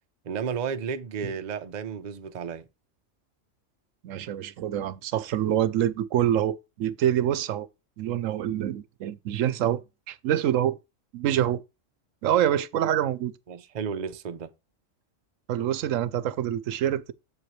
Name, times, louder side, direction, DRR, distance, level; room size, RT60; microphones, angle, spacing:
voice 1, 0.2-2.7 13.5-14.5, right 6 dB, 45° right, 0.6 m, -33 dB
voice 2, 4.0-7.7 8.0-9.8 10.1-10.8 11.1-11.6 12.2-13.3 15.5-17.1, right 11 dB, 80° right, 1.0 m, -26 dB
7.9 x 7.7 x 3.1 m
omnidirectional pair, 1.3 m